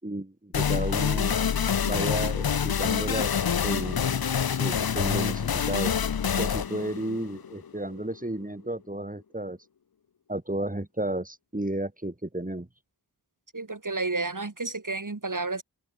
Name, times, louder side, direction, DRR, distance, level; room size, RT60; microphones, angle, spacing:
voice 1, 0.0-1.4 1.9-4.1 4.5-5.9 6.4-9.6 10.3-12.7, right 1 dB, 20° right, 6.9 m, -33 dB
sound 1, 0.5-8.0, left 7 dB, 65° left, 0.8 m, -26 dB
voice 2, 13.5-15.6, right 3 dB, 50° right, 6.8 m, -31 dB
wide cardioid pair, 65°, 40 cm